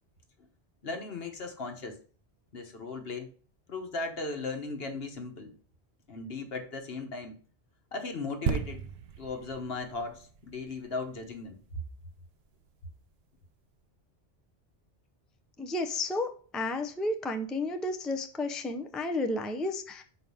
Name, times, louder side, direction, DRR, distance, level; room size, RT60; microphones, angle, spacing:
voice 1, 0.8-2.0 2.5-3.3 3.7-5.5 6.1-7.4 7.9-8.9 9.2-11.6, left 3 dB, 60° left, 5 dB, 1.4 m, -37 dB
sound 1, 8.5-12.1 12.7-12.8, right 7 dB, 70° right, 0.9 m, -36 dB
voice 2, 15.6-20.0, left 2 dB, ahead, 5 dB, 0.5 m, -32 dB
6.3 x 4.6 x 5.4 m, 0.43 s
omnidirectional pair, 1.1 m